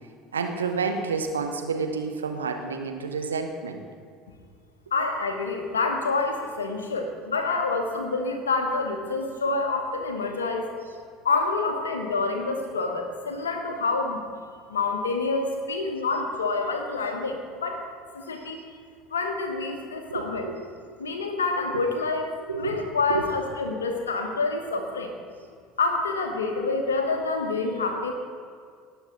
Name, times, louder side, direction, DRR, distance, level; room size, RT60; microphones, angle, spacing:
voice 1, 0.3-3.8 20.1-20.5 20.9-21.0 21.7-21.8 22.4-23.2, right 5 dB, 85° right, 5 dB, 0.9 m, -30 dB
voice 2, 4.9-10.7 11.2-14.2 14.7-17.8 18.3-18.7 19.1-20.5 21.0-22.3 22.6-25.1 25.8-28.1, left 3 dB, 85° left, 4 dB, 1.3 m, -27 dB
18.0 x 7.3 x 3.9 m, 2.1 s
hypercardioid pair, 65°, 0 cm